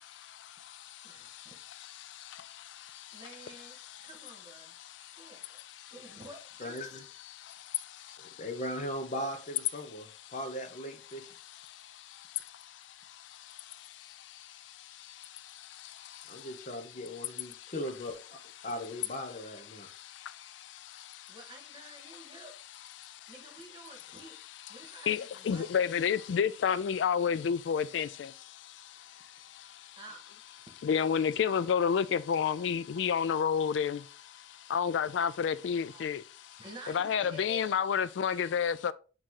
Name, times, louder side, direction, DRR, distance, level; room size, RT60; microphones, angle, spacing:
voice 1, 0.0-4.1 4.7-5.9 7.2-8.5 10.0-10.3 11.1-17.0 17.3-17.7 18.6-18.7 19.7-21.4 22.0-22.4 23.0-23.4 24.7-30.0 30.8-38.9, left 7 dB, 70° left, 0.3 m, -33 dB
voice 2, 1.0-1.6 3.1-3.8 4.0-4.7 5.2-5.6 5.9-6.8 21.3-22.5 23.3-24.3 24.7-25.7 30.0-30.3 30.6-30.9 31.7-31.8 32.1-32.2 32.9-33.3 35.8-36.1 36.6-37.6, right 2 dB, 25° right, 1.7 m, -50 dB
voice 3, 6.6-7.0 8.2-11.3 16.3-19.9, equal, 45° left, 0.9 m, -39 dB
8.7 x 3.1 x 3.8 m
head